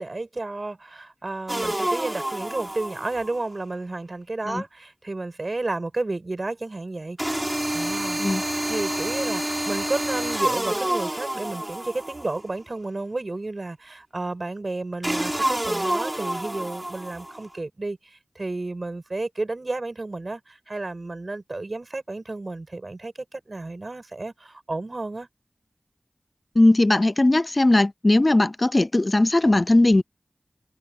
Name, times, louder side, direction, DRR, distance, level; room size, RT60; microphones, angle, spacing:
voice 1, 0.0-8.2 8.7-25.3, right 2 dB, 50° right, 7.8 m, -32 dB
sound 1, 1.5-3.5 7.2-12.5 15.0-17.4, right 1 dB, 20° right, 3.7 m, -28 dB
voice 2, 26.6-30.0, left 2 dB, 35° left, 0.3 m, -18 dB
wide cardioid pair, 65°, 0 cm